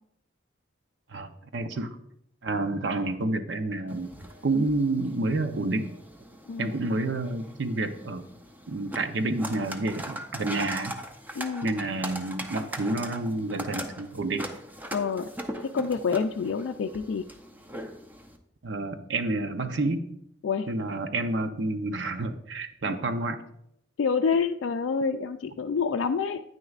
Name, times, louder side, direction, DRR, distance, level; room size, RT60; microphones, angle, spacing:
voice 1, 1.1-2.0 2.4-4.1 4.4-5.9 6.6-8.3 8.7-10.9 11.6-14.4 18.6-20.1 20.7-23.4, right 2 dB, 70° right, 8 dB, 0.7 m, -29 dB
sound 1, 3.9-18.4, equal, 10° right, 0.6 m, -40 dB
voice 2, 11.3-11.7 14.9-15.3 15.5-17.2 20.4-20.7 22.9-23.0 24.0-26.4, left 5 dB, 75° left, 4 dB, 0.3 m, -27 dB
9.5 x 9.1 x 2.4 m, 0.75 s
head